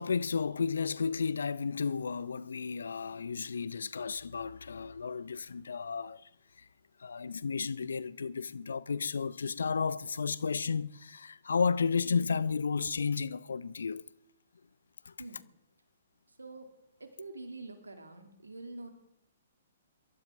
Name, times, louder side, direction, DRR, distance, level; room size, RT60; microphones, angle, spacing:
voice 1, 0.0-6.3 7.0-14.0 15.1-15.2, left 5 dB, 70° left, 0.5 m, -33 dB
voice 2, 17.0-18.9, right 2 dB, 80° right, 2.5 m, -45 dB
23.0 x 13.0 x 3.6 m
figure-of-eight pair, 120°, 0 cm